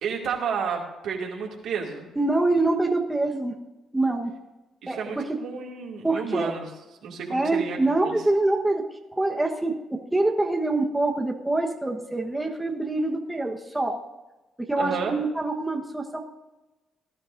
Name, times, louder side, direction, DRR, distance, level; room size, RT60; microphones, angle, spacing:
voice 1, 0.0-2.1 4.8-6.7 7.0-7.8 8.0-8.2 14.8-15.1, right 6 dB, 75° right, 0 dB, 2.4 m, -31 dB
voice 2, 2.2-3.5 3.9-4.3 4.9-5.2 6.0-6.5 7.3-8.8 9.1-14.0 14.6-16.2, right 2 dB, 10° right, 1 dB, 1.2 m, -25 dB
19.0 x 11.5 x 2.6 m, 1.1 s
cardioid pair, 90°, 0 cm